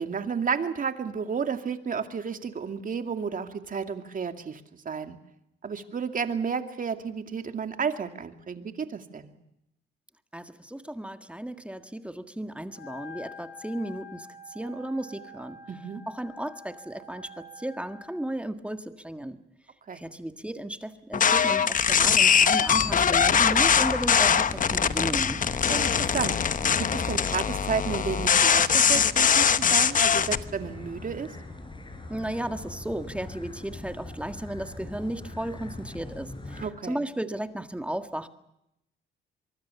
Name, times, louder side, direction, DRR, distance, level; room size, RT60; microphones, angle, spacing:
voice 1, 0.0-5.2 5.6-9.3 15.7-16.0 19.9-20.0 25.7-26.6 26.9-31.3 36.6-37.0, right 6 dB, 45° right, 7 dB, 2.5 m, -32 dB
voice 2, 10.3-14.3 14.5-15.6 16.1-19.4 19.9-25.4 32.1-38.3, right 1 dB, 5° right, 9 dB, 1.7 m, -34 dB
Wind instrument woodwind instrument, 12.7-18.3, left 2 dB, 65° left, 4.4 m, -47 dB
sound 1, 21.1-30.4, left 7 dB, 40° left, 1.0 m, -22 dB
sound 2, 22.7-36.7, left 2 dB, 25° left, 5.7 m, -40 dB
24.0 x 23.5 x 7.0 m, 0.81 s
cardioid pair, 90°, 20 cm